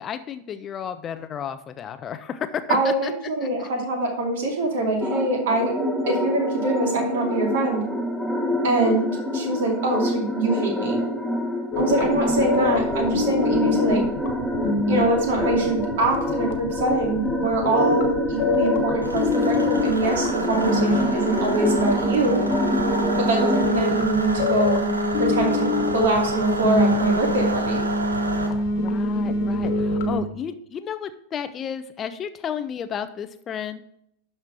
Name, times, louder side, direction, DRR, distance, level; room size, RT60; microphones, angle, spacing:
voice 1, 0.0-3.1 3.4-3.7 20.9-21.3 23.5-23.6 28.7-33.8, left 8 dB, 25° left, 11 dB, 0.5 m, -32 dB
voice 2, 2.7-5.7 6.1-7.8 8.6-11.0 11.8-14.0 14.9-22.4 23.2-24.8 25.2-25.7 25.9-27.8, right 2 dB, 55° right, 1 dB, 2.5 m, -24 dB
sound 1, 5.0-23.7, equal, 10° right, 1.3 m, -26 dB
sound 2, 11.7-30.2, left 2 dB, 50° left, 1.1 m, -26 dB
sound 3, 19.0-28.5, right 2 dB, 85° right, 1.1 m, -30 dB
12.0 x 4.3 x 4.8 m, 0.73 s
figure-of-eight pair, 90°, 0 cm